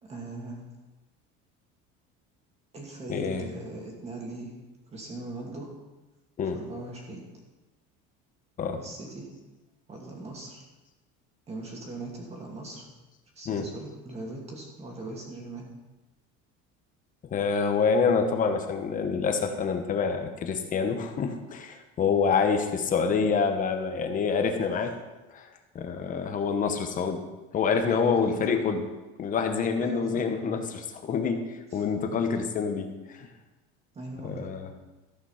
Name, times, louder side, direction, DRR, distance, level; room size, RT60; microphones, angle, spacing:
voice 1, 0.0-0.6 2.7-4.5 4.9-5.7 6.5-7.2 8.8-9.3 9.9-10.6 11.5-12.9 13.3-15.7 27.9-28.5 29.8-30.2 31.7-31.8 33.9-34.5, right 2 dB, 20° right, -1 dB, 2.2 m, -40 dB
voice 2, 3.1-3.5 6.4-6.6 8.6-8.8 13.5-13.7 17.3-25.0 25.3-25.5 25.7-27.2 27.5-28.9 29.2-33.3 34.2-34.7, left 5 dB, 30° left, 6 dB, 1.0 m, -27 dB
13.5 x 5.9 x 5.7 m, 1.1 s
cardioid pair, 165°, 29 cm